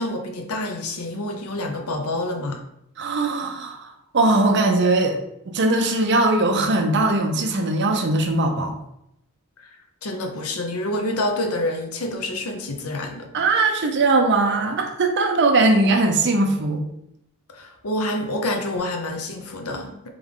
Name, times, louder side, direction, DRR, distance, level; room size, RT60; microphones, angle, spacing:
voice 1, 0.0-2.6 9.6-9.8 10.0-13.3 17.5-20.1, left 1 dB, 80° left, 4 dB, 0.7 m, -27 dB
voice 2, 3.0-5.2 5.5-8.7 13.3-16.8, right 2 dB, 50° right, 3 dB, 0.6 m, -20 dB
3.5 x 3.4 x 3.6 m, 0.79 s
head